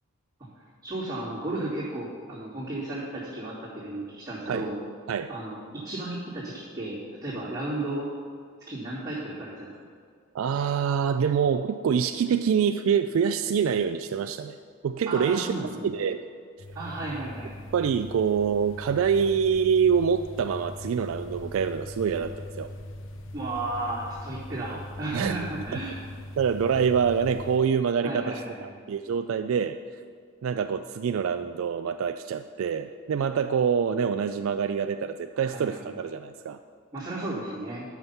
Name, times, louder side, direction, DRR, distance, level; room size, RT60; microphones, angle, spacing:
voice 1, 0.8-4.7 5.3-5.6 5.8-8.1 8.7-9.7 15.1-15.9 16.7-17.7 23.3-26.0 28.0-28.6 35.3-35.9 36.9-37.9, right 2 dB, 20° right, -14 dB, 2.7 m, -34 dB
voice 2, 10.3-14.6 14.8-15.5 15.8-16.3 17.7-22.7 25.1-25.4 25.7-25.8 26.4-29.8 30.4-36.6, right 7 dB, 70° right, 9 dB, 0.3 m, -26 dB
sound 1, 16.6-27.6, left 1 dB, 60° left, 0.7 m, -41 dB
11.0 x 5.9 x 5.6 m, 2.1 s
head